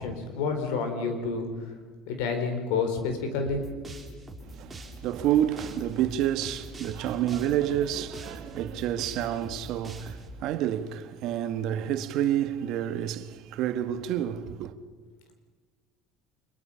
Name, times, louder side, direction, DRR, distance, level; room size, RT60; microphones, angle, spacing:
voice 1, 0.0-1.4 2.1-3.6, left 4 dB, 85° left, 4.3 m, -29 dB
sound 1, 3.4-10.3, right 1 dB, 15° right, 3.4 m, -43 dB
voice 2, 4.4-14.7, right 11 dB, 60° right, 1.3 m, -29 dB
26.0 x 22.0 x 5.7 m
cardioid pair, 120°, 0 cm